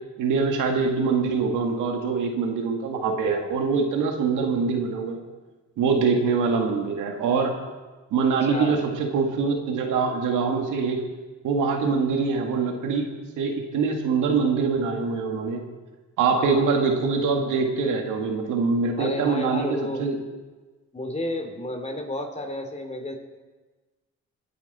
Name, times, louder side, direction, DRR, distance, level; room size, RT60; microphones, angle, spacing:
voice 1, 0.2-5.2 5.8-7.5 8.1-11.0 11.4-13.1 13.4-15.6 16.2-20.2, right 5 dB, 85° right, 2 dB, 2.1 m, -24 dB
voice 2, 8.5-8.8 16.3-16.7 19.0-20.0 20.9-23.2, left 1 dB, 20° left, 4 dB, 2.9 m, -31 dB
24.5 x 9.3 x 4.3 m, 1.3 s
cardioid pair, 90°, 30 cm